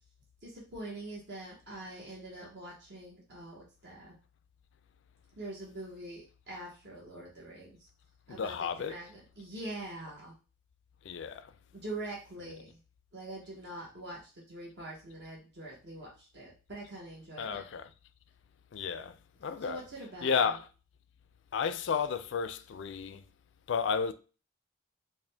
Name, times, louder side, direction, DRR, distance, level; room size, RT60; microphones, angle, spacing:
voice 1, 0.4-4.1 5.4-7.9 8.3-10.3 11.7-12.8 13.1-14.2 14.5-17.6 19.6-20.6, right 2 dB, 60° right, 1.0 m, -44 dB
voice 2, 8.3-9.0 11.0-11.5 17.4-17.9 18.7-19.8 20.2-20.7 21.5-23.2 23.7-24.1, left 6 dB, 65° left, 0.4 m, -32 dB
4.8 x 2.1 x 3.3 m
head